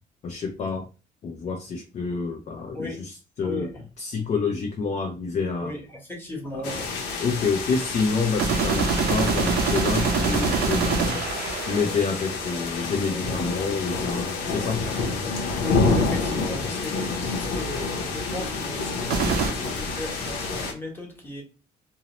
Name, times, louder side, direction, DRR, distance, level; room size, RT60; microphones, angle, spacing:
voice 1, 0.2-0.9 1.2-5.7 6.5-6.9 7.1-11.2 11.7-14.8, left 4 dB, 40° left, 0.5 m, -28 dB
voice 2, 6.2-6.8 15.6-21.4, left 1 dB, 10° left, 1.1 m, -36 dB
sound 1, 6.6-20.7, left 3 dB, 85° left, 0.7 m, -28 dB
sound 2, 8.4-12.4 19.1-19.5, right 5 dB, 75° right, 0.6 m, -24 dB
2.6 x 2.0 x 2.9 m
cardioid pair, 110°, 17 cm